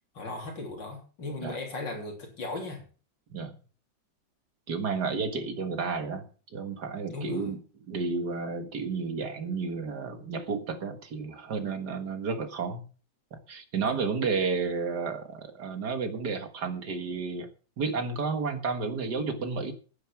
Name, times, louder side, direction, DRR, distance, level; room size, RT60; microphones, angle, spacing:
voice 1, 0.1-2.8 7.1-7.5 13.8-14.0, left 2 dB, 70° left, 2 dB, 3.9 m, -37 dB
voice 2, 4.7-7.6 7.9-12.8 13.3-17.5 17.8-19.7, right 4 dB, 60° right, 7 dB, 2.2 m, -31 dB
9.9 x 9.5 x 6.1 m, 0.37 s
omnidirectional pair, 2.0 m